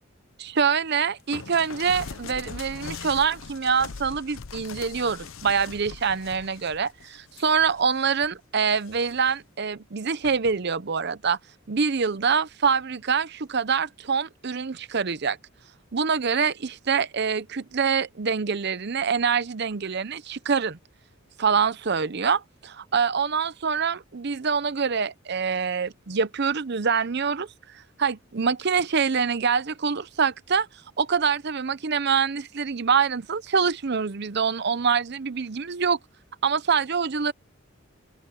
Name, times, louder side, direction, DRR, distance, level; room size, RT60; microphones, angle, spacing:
voice 1, 0.4-11.4 11.7-15.4 15.9-20.8 21.4-27.5 28.0-30.7 31.0-36.0 36.4-37.3, right 6 dB, 50° right, 0.7 m, -25 dB
sound 1, 1.3-8.3 8.7-9.4 10.2-10.6, left 5 dB, 75° left, 0.7 m, -41 dB
head